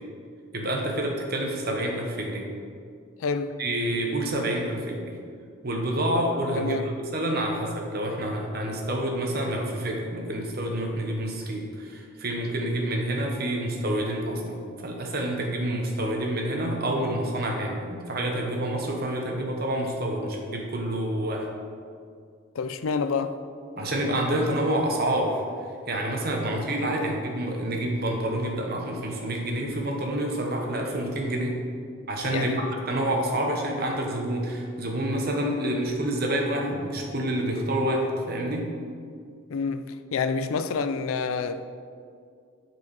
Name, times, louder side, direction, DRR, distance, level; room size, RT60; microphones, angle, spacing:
voice 1, 0.5-2.4 3.6-5.1 5.6-21.5 23.8-25.4 25.9-31.6 32.1-38.7, right 1 dB, 45° right, 1 dB, 1.1 m, -28 dB
voice 2, 3.2-3.6 6.6-6.9 22.6-23.4 27.1-27.2 32.3-32.7 39.5-41.7, left 5 dB, 80° left, 11 dB, 0.4 m, -28 dB
8.3 x 4.7 x 4.7 m, 2.2 s
head